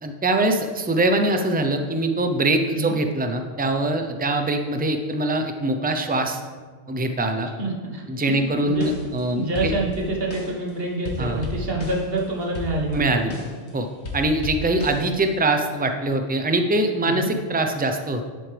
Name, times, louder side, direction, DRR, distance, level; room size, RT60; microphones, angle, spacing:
voice 1, 0.0-6.4 6.9-7.5 8.1-9.7 11.2-11.4 12.9-13.3 13.7-13.9 14.1-18.2, right 2 dB, 10° right, 5 dB, 0.5 m, -23 dB
voice 2, 7.6-8.9 9.3-13.3 17.0-17.3, right 2 dB, 60° right, -1 dB, 1.6 m, -27 dB
sound 1, 8.7-9.3 9.6-10.7 11.1-13.7 14.1-15.4, left 2 dB, 80° left, 1.5 m, -34 dB
10.5 x 7.8 x 3.4 m, 1.5 s
omnidirectional pair, 1.1 m